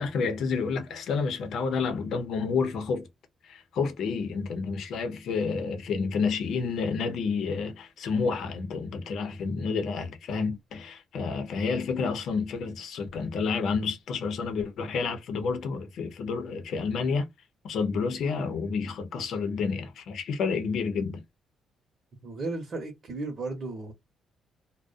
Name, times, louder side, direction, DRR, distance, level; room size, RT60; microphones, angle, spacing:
voice 1, 0.0-3.1 3.4-17.3 17.6-21.2, left 5 dB, 70° left, 0.7 m, -29 dB
voice 2, 22.2-23.9, right 3 dB, 50° right, 0.9 m, -34 dB
2.3 x 2.1 x 2.5 m
cardioid pair, 90°, 0 cm